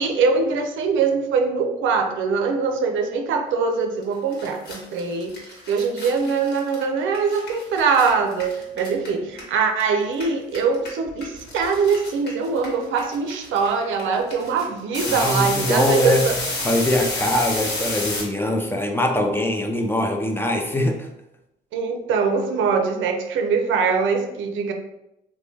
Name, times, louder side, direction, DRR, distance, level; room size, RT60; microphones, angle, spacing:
voice 1, 0.0-5.3 5.7-16.4 21.7-24.7, right 5 dB, 80° right, 4 dB, 0.5 m, -22 dB
sound 1, 4.0-4.1 4.3-9.8 10.1-18.2, left 2 dB, 55° left, 1.2 m, -30 dB
voice 2, 15.1-16.2 16.6-21.1, left 1 dB, 10° left, 2 dB, 0.4 m, -22 dB
3.0 x 2.2 x 3.3 m, 0.86 s
cardioid pair, 90°, 20 cm